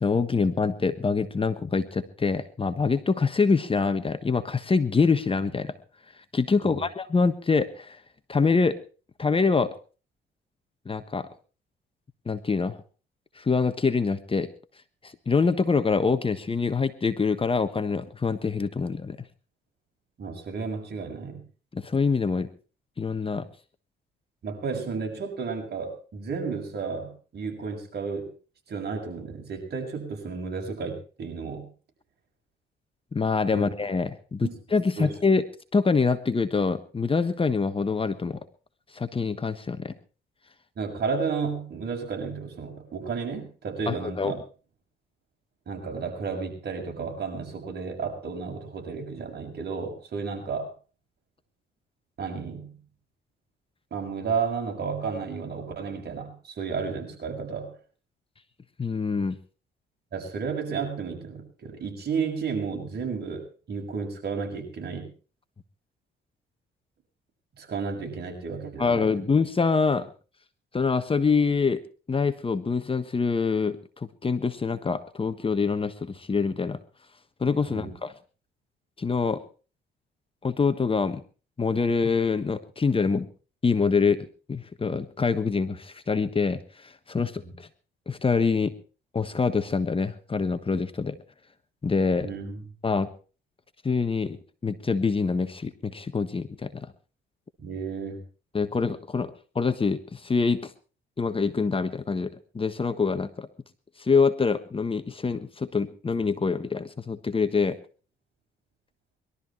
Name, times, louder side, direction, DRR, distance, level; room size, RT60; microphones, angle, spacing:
voice 1, 0.0-5.7 6.3-8.0 8.3-8.8 9.2-9.7 10.8-11.3 12.3-12.8 13.4-14.5 15.0-19.2 21.7-22.5 23.0-23.5 33.1-35.4 35.7-38.4 38.9-39.9 43.9-44.3 58.8-59.4 68.8-70.1 70.7-71.8 72.1-76.8 77.4-78.1 79.0-79.4 80.4-81.2 81.6-83.3 83.6-87.7 88.1-88.7 89.1-91.2 91.8-92.3 92.8-93.1 93.8-94.4 94.6-96.9 98.5-100.7 101.2-103.5 104.0-107.8, left 4 dB, 25° left, 11 dB, 1.3 m, -25 dB
voice 2, 20.2-21.4 24.4-28.3 28.7-31.7 33.5-33.6 34.4-34.6 35.0-35.1 40.8-44.4 45.7-50.7 52.2-52.7 53.9-57.7 60.1-65.1 67.6-69.3 77.7-77.9 87.4-87.5 92.2-92.6 97.6-98.2, right 5 dB, 55° right, 3 dB, 6.5 m, -32 dB
21.5 x 13.0 x 4.5 m, 0.37 s
cardioid pair, 90°, 20 cm